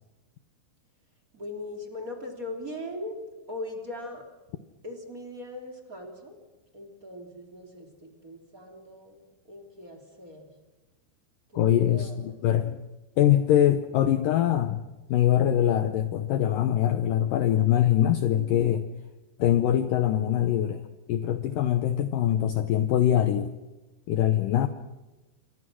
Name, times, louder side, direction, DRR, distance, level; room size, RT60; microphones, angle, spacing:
voice 1, 1.3-3.2 3.5-4.3 4.8-6.4 6.7-10.5 11.5-12.4, left 1 dB, 20° right, 5 dB, 2.8 m, -40 dB
voice 2, 11.5-12.8 13.2-14.8 15.1-18.9 19.4-20.8 21.1-23.5 24.1-24.7, left 11 dB, 85° left, 9 dB, 1.9 m, -23 dB
28.0 x 24.0 x 6.2 m, 1.1 s
omnidirectional pair, 5.2 m